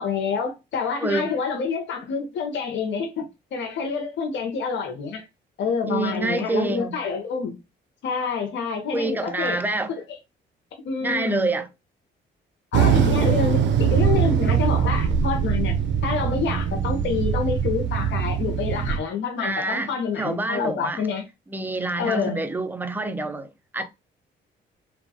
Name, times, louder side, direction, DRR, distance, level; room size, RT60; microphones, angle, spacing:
voice 1, 0.0-3.2 3.5-5.3 5.6-7.6 8.0-9.6 10.8-11.5 12.7-15.7 16.0-21.2 22.0-22.4, left 5 dB, 70° left, 0.6 m, -27 dB
voice 2, 1.0-1.3 5.9-7.0 8.9-9.9 11.0-11.7 19.4-21.0 21.5-23.8, right 2 dB, 10° right, 0.4 m, -27 dB
sound 1, 12.7-19.0, right 7 dB, 70° right, 0.5 m, -22 dB
2.9 x 2.2 x 2.6 m
cardioid pair, 90°, 20 cm